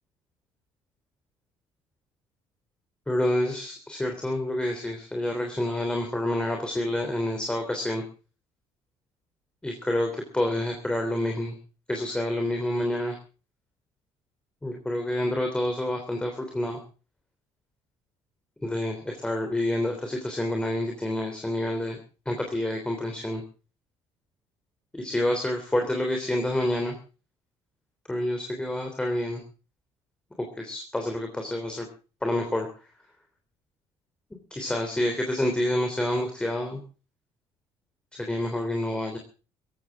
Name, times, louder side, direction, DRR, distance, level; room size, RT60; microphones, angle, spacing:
voice 1, 3.1-8.0 9.6-11.6 11.9-13.2 14.6-16.8 18.6-22.0 22.2-23.4 24.9-27.0 28.1-29.4 30.4-31.9 32.2-32.7 34.5-36.8 38.1-39.2, left 1 dB, 10° left, 3 dB, 3.3 m, -28 dB
19.5 x 15.5 x 3.7 m, 0.36 s
cardioid pair, 145°, 11 cm